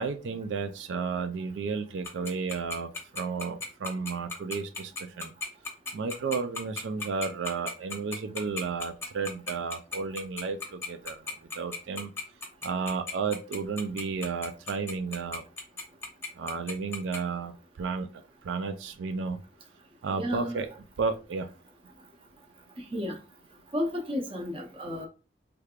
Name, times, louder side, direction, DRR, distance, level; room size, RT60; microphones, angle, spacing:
voice 1, 0.0-4.9 5.2-5.3 5.9-11.2 11.6-12.1 12.6-15.4 16.4-18.1 18.4-19.4 20.0-20.7 21.0-21.5, right 5 dB, 90° right, 0.4 m, -32 dB
Tick-tock, 2.0-17.2, left 4 dB, 15° left, 0.8 m, -35 dB
voice 2, 20.1-20.6 22.8-23.2 23.7-25.1, left 1 dB, 30° right, 0.7 m, -32 dB
3.3 x 3.3 x 2.4 m
head